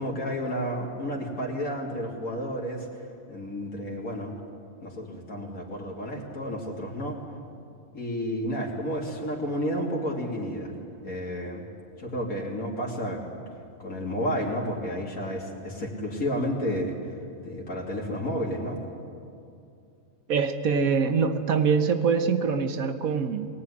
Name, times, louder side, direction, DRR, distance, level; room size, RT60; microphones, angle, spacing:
voice 1, 0.0-3.0 3.3-4.3 4.8-7.2 7.9-10.7 11.0-11.7 12.0-13.4 13.8-18.8, equal, 80° left, -2 dB, 3.4 m, -31 dB
voice 2, 20.3-23.5, right 5 dB, 75° right, 7 dB, 1.5 m, -24 dB
23.0 x 19.0 x 10.0 m, 2.5 s
omnidirectional pair, 1.5 m